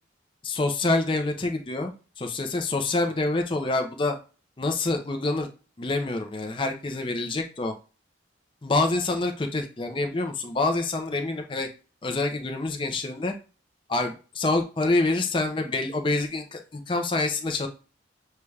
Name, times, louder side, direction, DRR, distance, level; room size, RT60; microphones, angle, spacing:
voice 1, 0.4-1.9 2.2-4.1 4.6-5.5 5.8-7.7 8.6-11.7 12.0-13.3 13.9-17.7, left 2 dB, 25° left, 4 dB, 0.5 m, -26 dB
6.7 x 2.3 x 3.2 m, 0.35 s
head